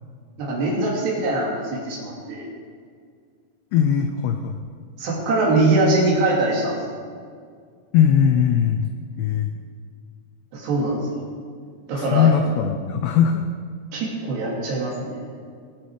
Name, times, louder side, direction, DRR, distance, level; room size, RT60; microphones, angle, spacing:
voice 1, 0.4-2.5 5.0-6.8 10.5-11.3 11.9-12.3 13.9-15.2, right 2 dB, 60° right, -4 dB, 4.7 m, -22 dB
voice 2, 3.7-4.6 7.9-8.9 9.2-9.5 12.0-13.4, left 8 dB, 90° left, 7 dB, 2.4 m, -19 dB
22.0 x 8.7 x 4.8 m, 2.1 s
omnidirectional pair, 5.8 m